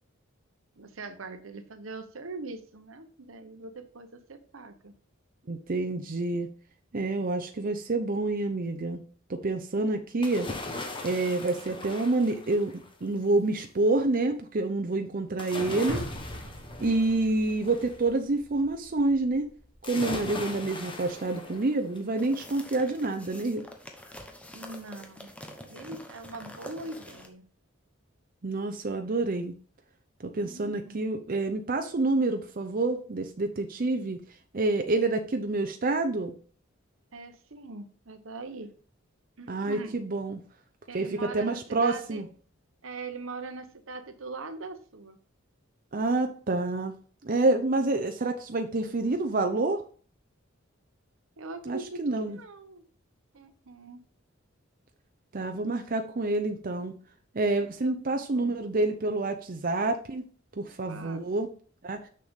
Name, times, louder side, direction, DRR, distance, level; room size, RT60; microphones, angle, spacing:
voice 1, 0.8-5.0 24.5-25.3 25.6-27.5 30.4-31.0 37.1-38.7 39.4-40.0 40.9-42.2 42.8-45.2 51.4-52.8 53.3-54.0 57.6-58.6 60.9-61.2, right 3 dB, 70° right, 9 dB, 0.9 m, -42 dB
voice 2, 5.5-6.5 6.9-9.0 9.3-10.5 11.0-12.7 13.0-16.0 16.8-19.5 19.8-23.6 28.4-29.5 30.2-34.2 34.5-36.3 39.5-40.4 40.9-42.3 45.9-46.9 47.2-49.8 51.7-52.4 55.3-56.9 57.3-60.2 60.6-61.5 61.8-62.0, right 2 dB, 45° right, 6 dB, 0.7 m, -28 dB
sound 1, 10.2-13.0 15.4-18.0 19.8-22.1 22.5-22.6, left 2 dB, 25° left, 1.2 m, -39 dB
sound 2, 15.9-20.3 20.7-20.8, equal, 80° left, 2.7 m, -43 dB
sound 3, 22.2-27.3, left 1 dB, 5° left, 1.0 m, -46 dB
6.7 x 6.6 x 3.6 m, 0.43 s
head